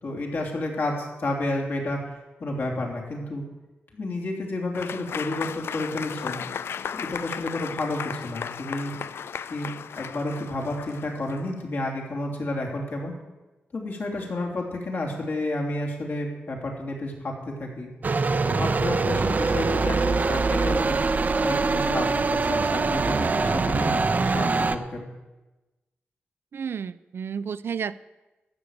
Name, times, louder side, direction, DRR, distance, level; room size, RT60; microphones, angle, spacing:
voice 1, 0.0-2.1 2.4-3.4 3.9-6.4 6.9-8.9 9.5-9.7 10.0-13.1 13.7-17.9 18.5-21.0 21.4-25.0, left 2 dB, 65° left, -1 dB, 3.3 m, -30 dB
Applause / Crowd, 4.7-11.6, left 7 dB, 80° left, 0.4 m, -35 dB
sound 1, 18.0-24.8, right 4 dB, 45° right, 0.7 m, -23 dB
voice 2, 26.5-27.9, right 7 dB, 70° right, 15 dB, 0.4 m, -31 dB
14.0 x 6.7 x 9.0 m, 1.1 s
cardioid pair, 80°, 4 cm